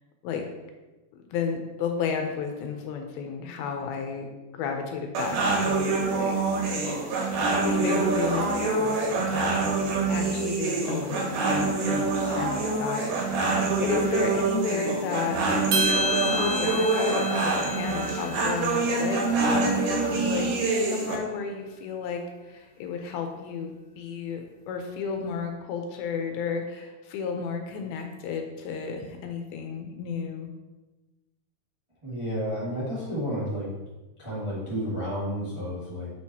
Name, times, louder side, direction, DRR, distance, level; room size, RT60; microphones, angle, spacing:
voice 1, 1.1-4.3 4.5-6.4 7.6-13.1 13.4-15.4 16.2-19.8 20.1-30.5, left 5 dB, 80° left, 4 dB, 2.4 m, -33 dB
sound 1, 5.1-21.2, right 3 dB, 70° right, 2.3 m, -26 dB
sound 2, 15.7-20.1, equal, 85° right, 1.5 m, -31 dB
voice 2, 32.0-33.7 34.2-36.1, equal, 45° right, -9 dB, 0.4 m, -31 dB
6.7 x 6.3 x 2.8 m, 1.1 s
omnidirectional pair, 4.6 m